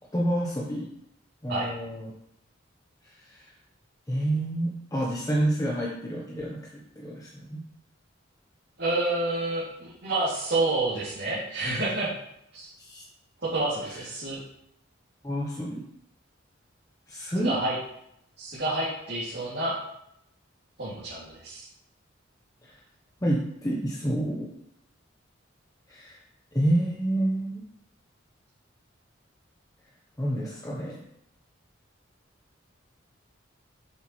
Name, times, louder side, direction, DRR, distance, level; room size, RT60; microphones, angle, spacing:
voice 1, 0.1-0.9 1.4-2.1 3.0-3.5 4.1-7.6 12.8-13.1 13.8-14.1 15.2-15.8 17.1-17.5 22.6-22.8 23.2-24.5 25.9-26.2 26.5-27.6 30.2-31.0, right 1 dB, 15° left, -4 dB, 1.0 m, -29 dB
voice 2, 8.8-12.1 12.5-12.7 13.4-14.4 17.4-17.7 18.4-19.7 20.8-21.7, right 2 dB, 55° right, -10 dB, 2.6 m, -29 dB
8.1 x 7.3 x 3.2 m, 0.76 s
head